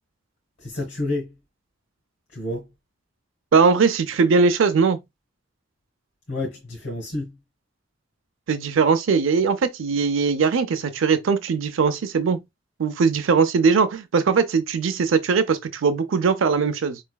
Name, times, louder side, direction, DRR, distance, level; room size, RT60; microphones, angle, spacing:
voice 1, 0.6-1.3 2.3-2.7 6.3-7.4, left 2 dB, 65° left, 1.1 m, -29 dB
voice 2, 3.5-5.0 8.5-12.4 12.8-17.0, right 5 dB, 85° right, 0.5 m, -20 dB
4.6 x 3.2 x 2.2 m
head